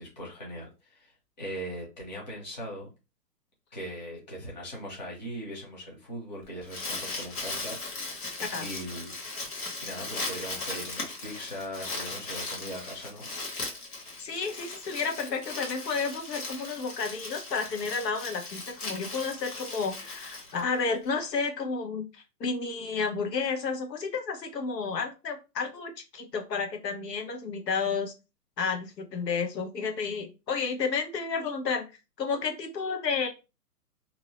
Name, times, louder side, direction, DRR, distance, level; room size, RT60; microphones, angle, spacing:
voice 1, 0.0-2.9 3.7-7.8 8.6-9.1 9.8-13.3, equal, 30° left, -3 dB, 0.7 m, -40 dB
Crumpling crinkling, 6.4-21.0, left 3 dB, 65° left, 1.3 m, -38 dB
voice 2, 14.2-28.1 28.6-31.8 32.2-33.3, left 5 dB, 90° left, 4 dB, 0.9 m, -31 dB
2.7 x 2.0 x 3.0 m, 0.28 s
hypercardioid pair, 175°, 48 cm